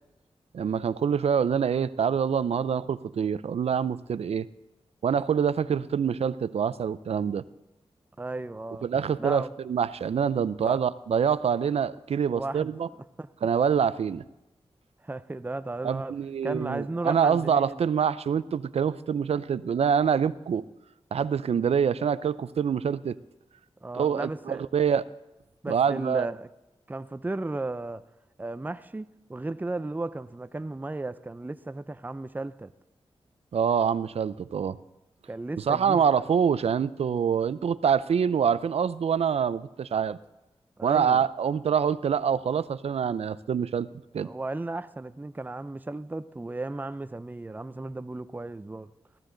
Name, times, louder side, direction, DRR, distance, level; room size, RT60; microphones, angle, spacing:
voice 1, 0.5-4.5 5.0-7.4 8.8-12.9 13.4-14.2 15.8-20.7 21.1-23.2 23.9-25.0 25.7-26.3 33.5-34.8 35.6-40.2 40.8-43.9 44.1-44.3, right 7 dB, 80° right, 0.5 m, -25 dB
voice 2, 8.2-8.9 9.2-9.5 10.6-10.8 12.3-12.7 13.2-13.3 15.0-16.2 16.4-17.8 23.8-24.6 25.6-26.5 26.9-28.0 28.4-32.7 35.3-36.0 40.8-41.2 44.2-48.9, right 2 dB, 15° right, 0.5 m, -35 dB
15.0 x 14.5 x 3.9 m
wide cardioid pair, 80°, 10 cm